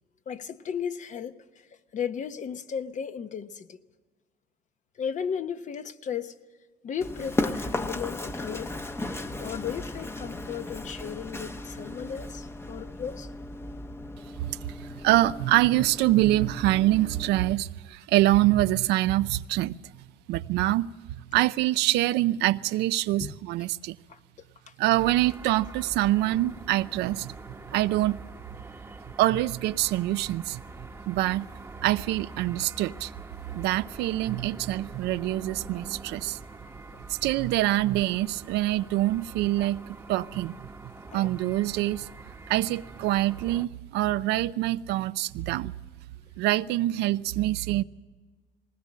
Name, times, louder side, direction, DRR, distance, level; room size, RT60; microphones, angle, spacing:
voice 1, 0.3-3.8 5.0-6.3 6.8-8.7 9.4-13.3 13.7-13.8 23.2-23.3 24.1-24.2 24.7-24.8 39.6-39.7 41.1-41.3 45.5-45.7, left 7 dB, 45° left, 1.1 m, -35 dB
Run, 7.0-17.5, left 2 dB, 15° left, 0.9 m, -36 dB
voice 2, 14.4-19.8 20.3-20.9 21.3-24.0 24.8-27.3 27.7-28.2 29.2-30.6 31.1-31.5 31.8-33.1 33.5-36.4 37.1-40.5 41.1-42.1 42.5-45.8 46.4-47.8, right 16 dB, 85° right, 0.6 m, -25 dB
sound 1, 25.0-43.7, right 3 dB, 15° right, 1.1 m, -44 dB
20.0 x 19.0 x 7.6 m
cardioid pair, 110°, 17 cm